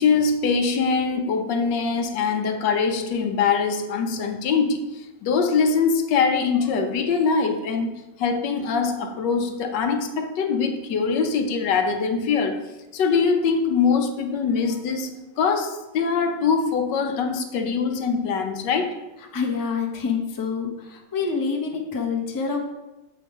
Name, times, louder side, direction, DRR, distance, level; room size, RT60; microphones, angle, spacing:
voice 1, 0.0-12.6 12.9-18.9, left 5 dB, 75° left, 6 dB, 1.5 m, -23 dB
voice 2, 19.3-22.6, left 5 dB, 20° left, 1 dB, 0.6 m, -27 dB
7.6 x 4.9 x 5.3 m, 1.0 s
omnidirectional pair, 1.9 m